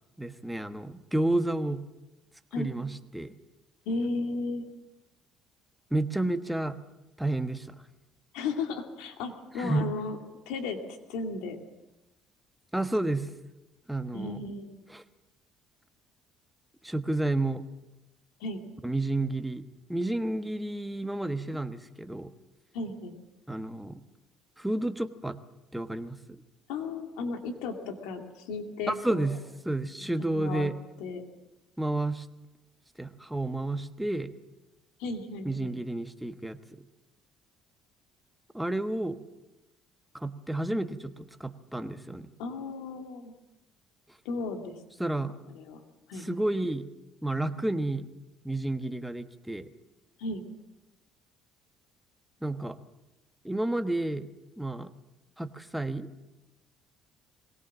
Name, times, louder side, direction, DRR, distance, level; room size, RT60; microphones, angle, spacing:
voice 1, 0.2-1.8 2.6-3.3 5.9-6.8 7.2-7.8 9.6-9.9 12.7-13.3 13.9-14.4 14.9-15.0 16.8-17.6 18.8-19.6 19.9-22.3 23.5-24.0 24.6-25.4 25.7-26.4 28.9-29.4 29.6-30.8 31.8-32.3 33.0-34.3 35.4-36.6 38.5-39.2 40.1-42.3 45.0-45.3 46.1-46.9 47.2-48.1 48.4-49.7 52.4-52.8 53.4-54.3 54.6-54.9 55.4-56.1, right 2 dB, 5° right, 9 dB, 1.2 m, -31 dB
voice 2, 3.9-4.7 8.3-10.2 10.5-10.8 11.1-11.6 14.1-14.8 18.4-18.6 22.7-23.2 26.7-29.3 30.3-30.7 31.0-31.2 35.0-35.8 42.4-43.3 44.2-44.8 45.5-45.8 46.1-46.3 50.2-50.5, left 3 dB, 90° left, 5 dB, 2.4 m, -34 dB
21.5 x 17.5 x 7.5 m, 0.97 s
cardioid pair, 100°, 0 cm